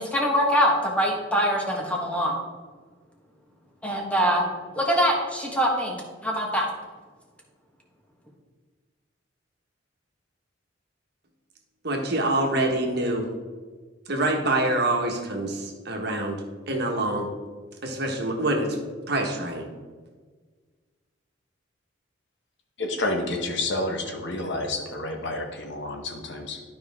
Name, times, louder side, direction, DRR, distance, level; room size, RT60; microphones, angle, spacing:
voice 1, 0.0-2.4 3.8-4.5 4.7-5.9 6.2-6.7, equal, 5° left, 0 dB, 1.4 m, -23 dB
voice 2, 11.8-13.3 14.1-16.4 16.7-17.3 17.8-18.8 19.1-19.7, right 2 dB, 55° right, 2 dB, 1.4 m, -25 dB
voice 3, 22.8-26.6, left 2 dB, 60° left, 3 dB, 1.2 m, -29 dB
12.0 x 5.0 x 3.6 m, 1.4 s
head